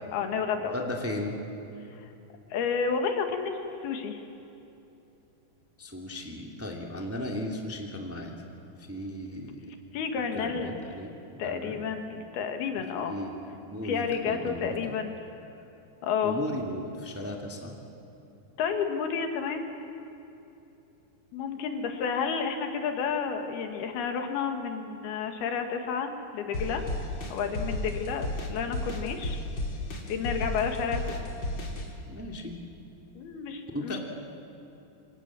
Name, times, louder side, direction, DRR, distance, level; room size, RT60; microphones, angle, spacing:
voice 1, 0.1-0.7 2.0-2.1 2.5-4.2 9.9-10.7 11.4-13.2 13.8-15.1 16.0-16.4 18.6-19.7 21.3-26.8 27.3-29.4 30.1-31.2 33.2-34.0, left 6 dB, 85° left, 5 dB, 3.8 m, -31 dB
voice 2, 0.6-1.4 5.8-8.3 8.8-9.6 10.3-11.8 12.9-14.8 16.2-17.7 32.1-32.6 33.7-34.0, left 1 dB, 5° right, 0 dB, 1.8 m, -36 dB
sound 1, 26.5-31.9, left 1 dB, 35° left, 3.2 m, -33 dB
26.5 x 26.0 x 7.6 m, 2.8 s
omnidirectional pair, 4.4 m